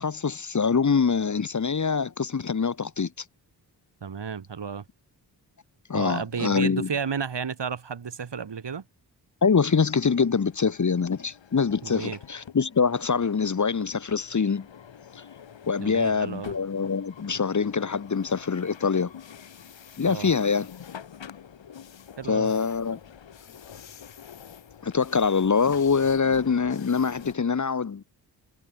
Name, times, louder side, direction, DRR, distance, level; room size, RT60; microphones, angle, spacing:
voice 1, 0.0-3.1 5.9-6.9 9.4-14.7 15.1-15.2 15.7-19.1 20.0-20.7 22.3-23.0 24.8-28.0, left 5 dB, 40° left, 1.3 m, -24 dB
voice 2, 4.0-4.8 5.9-8.9 11.8-12.2 15.8-16.5 20.1-20.3 22.2-22.5, right 6 dB, 70° right, 6.1 m, -32 dB
sound 1, 9.5-27.3, left 8 dB, 85° left, 7.7 m, -46 dB
cardioid pair, 45°, 44 cm